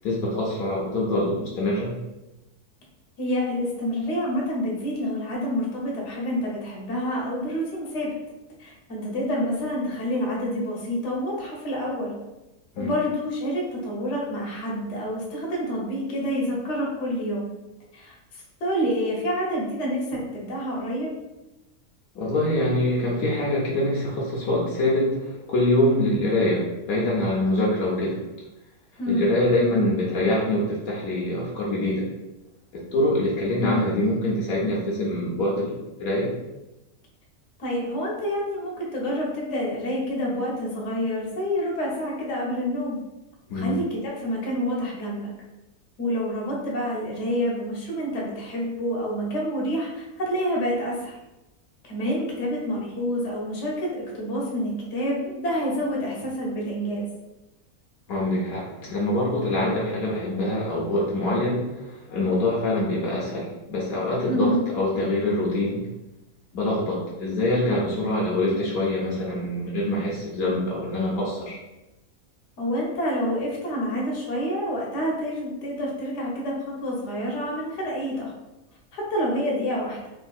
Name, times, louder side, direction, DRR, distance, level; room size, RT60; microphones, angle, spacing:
voice 1, 0.0-1.9 12.7-12.9 22.1-28.2 29.1-32.1 32.7-36.3 43.5-43.8 58.1-65.8 66.5-71.6, left 1 dB, 75° left, -5 dB, 1.1 m, -24 dB
voice 2, 3.2-8.1 8.6-12.1 12.8-17.5 17.9-21.1 29.0-29.3 37.6-43.0 43.5-45.3 46.0-51.2 51.8-57.1 64.3-64.6 72.6-78.3 78.9-80.0, equal, 55° left, -3 dB, 1.1 m, -28 dB
3.5 x 2.5 x 2.3 m, 0.99 s
omnidirectional pair, 1.6 m